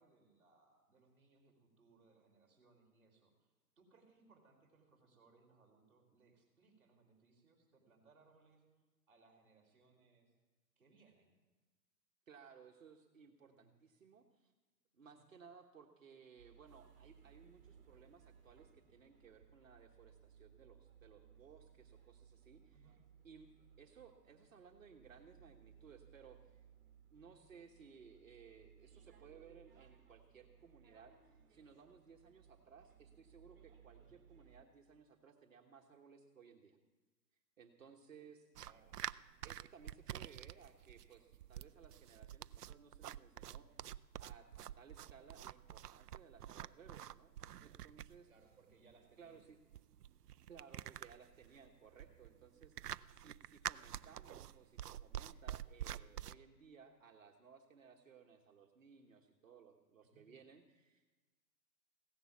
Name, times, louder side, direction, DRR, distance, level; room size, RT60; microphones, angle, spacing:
voice 1, 0.0-10.3 10.7-11.3 13.5-13.7 15.0-15.3 22.7-23.0 27.2-27.4 33.9-34.1 38.6-39.0 43.7-43.9 48.2-49.4 60.0-60.3, right 3 dB, ahead, -13 dB, 3.0 m, -69 dB
voice 2, 12.3-14.5 14.9-23.0 23.2-23.5 23.8-26.6 27.1-31.1 31.5-36.8 37.6-38.5 39.4-43.9 44.2-47.3 47.6-48.3 49.2-49.6 50.5-61.3, right 6 dB, 50° right, 2 dB, 1.3 m, -61 dB
sound 1, 16.4-34.7, right 7 dB, 35° right, 1.9 m, -64 dB
sound 2, 38.5-56.3, right 11 dB, 65° right, 0.5 m, -48 dB
16.0 x 11.0 x 7.2 m, 1.2 s
hypercardioid pair, 175°, 50 cm